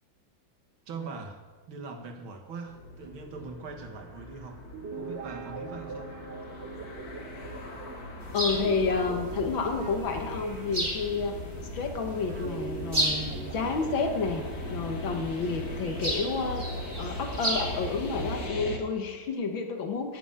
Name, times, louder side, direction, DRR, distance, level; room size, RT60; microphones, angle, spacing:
voice 1, 0.9-1.4 1.7-4.6 4.9-6.1, right 4 dB, 85° right, 4 dB, 2.3 m, -41 dB
sound 1, 2.7-18.8, left 1 dB, 50° left, 2.0 m, -41 dB
Guitar, 4.6-11.8 12.3-16.0, right 4 dB, 50° right, 0.7 m, -42 dB
sound 2, 8.2-18.5, equal, 15° right, 2.4 m, -35 dB
voice 2, 8.3-11.4 11.7-14.5 14.7-16.6 17.0-20.2, left 4 dB, 75° left, 4 dB, 2.0 m, -30 dB
13.0 x 7.2 x 8.8 m, 1.4 s
omnidirectional pair, 2.2 m